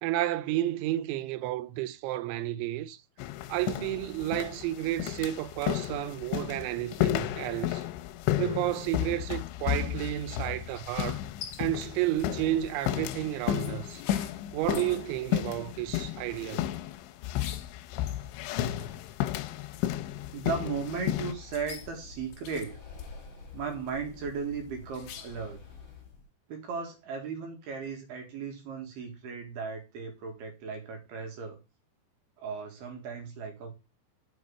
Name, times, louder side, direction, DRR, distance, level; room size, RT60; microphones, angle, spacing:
voice 1, 0.0-3.0 3.5-7.8 8.4-11.2 11.6-14.0 14.5-16.7, right 14 dB, 90° right, 3.0 m, -31 dB
sound 1, 3.2-21.3, left 13 dB, 90° left, 3.0 m, -33 dB
sound 2, 10.4-25.6, left 9 dB, 70° left, 2.7 m, -50 dB
Breathing, 20.1-26.3, left 5 dB, 40° left, 3.0 m, -48 dB
voice 2, 20.3-22.8 23.5-25.6 26.5-31.6 32.4-33.7, right 5 dB, 65° right, 3.6 m, -36 dB
7.3 x 5.6 x 5.3 m
omnidirectional pair, 5.2 m